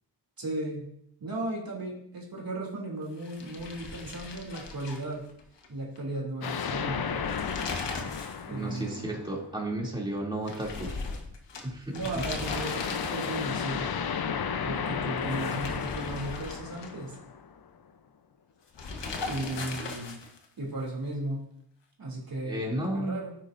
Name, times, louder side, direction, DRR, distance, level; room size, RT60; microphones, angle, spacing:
voice 1, 0.4-0.9 1.2-5.2 5.7-7.3 8.5-9.1 11.9-13.9 14.6-17.2 19.2-20.2 20.6-21.5 22.0-23.3, right 2 dB, 55° right, -2 dB, 2.9 m, -35 dB
sound 1, 3.2-5.7 6.0-6.1 7.1-8.5 8.8-8.9 10.5-13.6 15.2-17.2 18.7-20.4, left 4 dB, 80° left, 1.3 m, -38 dB
sound 2, 6.4-9.5 12.4-17.6, left 7 dB, 60° left, 0.8 m, -33 dB
voice 2, 8.4-10.9 11.6-12.2 22.5-23.2, right 1 dB, 10° right, -3 dB, 2.8 m, -33 dB
9.7 x 9.3 x 2.6 m, 0.72 s
cardioid pair, 50°, 42 cm